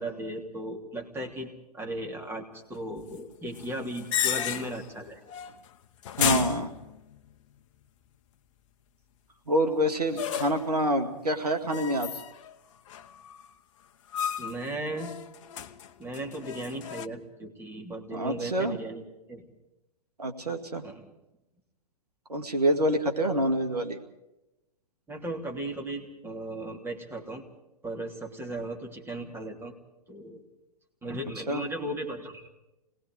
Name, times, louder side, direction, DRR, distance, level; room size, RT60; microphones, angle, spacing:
voice 1, 0.0-5.2 10.1-10.2 14.4-15.1 16.0-19.0 19.3-19.5 20.8-21.1 25.1-27.4 27.8-29.7 30.1-30.4 31.0-32.5, right 1 dB, 10° right, 2 dB, 3.2 m, -36 dB
sound 1, 3.6-4.9 5.3-5.7 6.0-7.3 10.2-10.8 11.7-12.5 12.9-13.5 14.1-14.7 15.0-17.1, left 9 dB, 55° left, 1.1 m, -33 dB
voice 2, 6.2-6.7 9.5-12.2 18.1-18.8 20.2-20.8 22.3-24.0 31.5-31.6, right 1 dB, 85° right, 5 dB, 2.2 m, -27 dB
27.5 x 20.0 x 5.0 m, 0.93 s
figure-of-eight pair, 115°, 20 cm